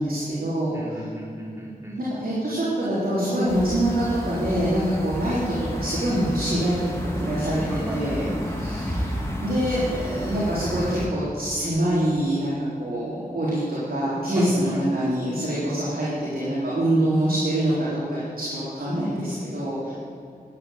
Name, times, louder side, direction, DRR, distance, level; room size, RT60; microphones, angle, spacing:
voice 1, 0.0-1.1 2.2-6.8 7.1-8.3 8.6-19.9, right 1 dB, 70° right, -9 dB, 4.0 m, -25 dB
voice 2, 0.7-2.0 7.7-8.4 14.4-14.8, equal, 15° right, -2 dB, 3.8 m, -37 dB
sound 1, 3.5-11.1, equal, 15° left, 2.5 m, -31 dB
13.0 x 8.9 x 8.4 m, 2.5 s
wide cardioid pair, 65°, 16 cm